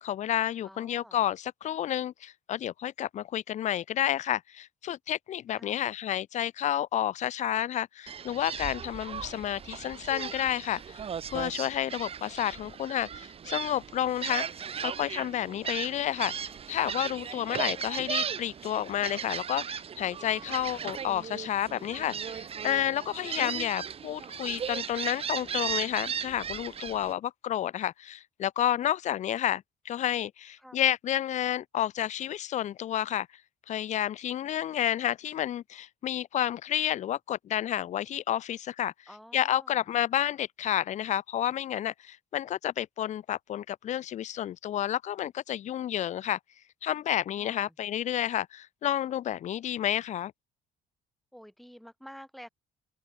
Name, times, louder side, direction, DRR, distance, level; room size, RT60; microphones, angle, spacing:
voice 1, 0.0-11.0 11.3-14.5 14.8-33.3 33.7-38.9 39.3-46.4 46.8-50.3, left 11 dB, 45° left, 0.5 m, -30 dB
voice 2, 0.6-1.2 5.5-5.9 20.5-20.9 30.6-30.8 39.1-39.9 47.4-47.7 51.3-52.5, equal, ahead, 4.1 m, -50 dB
Gull seagull, 8.1-27.1, right 7 dB, 35° right, 0.8 m, -37 dB
open air
cardioid pair, 110°, 17 cm